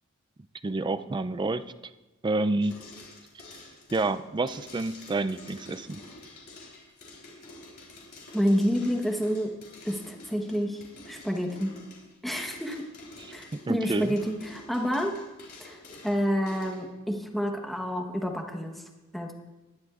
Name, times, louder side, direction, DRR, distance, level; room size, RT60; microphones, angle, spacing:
voice 1, 0.6-1.6 2.2-2.8 3.9-6.0 13.5-14.1, right 2 dB, 20° right, 12 dB, 0.4 m, -28 dB
sound 1, 2.6-16.8, left 2 dB, 50° left, 3.7 m, -48 dB
voice 2, 8.3-9.5 9.8-10.8 11.1-11.7 12.2-12.9 13.3-15.1 15.6-15.8 16.0-18.8 19.1-19.3, equal, ahead, 2 dB, 1.1 m, -28 dB
19.5 x 11.5 x 2.4 m, 1.1 s
head